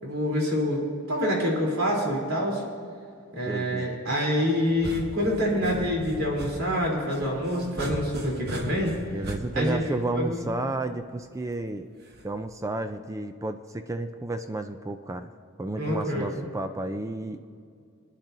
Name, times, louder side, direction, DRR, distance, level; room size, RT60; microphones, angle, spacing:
voice 1, 0.0-0.8 1.1-2.6 3.3-9.0 9.5-9.8 10.1-10.5 15.8-16.5, equal, 75° right, -3 dB, 3.5 m, -26 dB
voice 2, 3.5-3.9 9.1-11.9 12.2-15.3 15.6-17.4, right 2 dB, 15° right, 8 dB, 0.3 m, -32 dB
sound 1, 4.7-10.7 12.1-12.5, right 1 dB, 50° right, 1.1 m, -38 dB
23.5 x 10.0 x 2.7 m, 2.3 s
head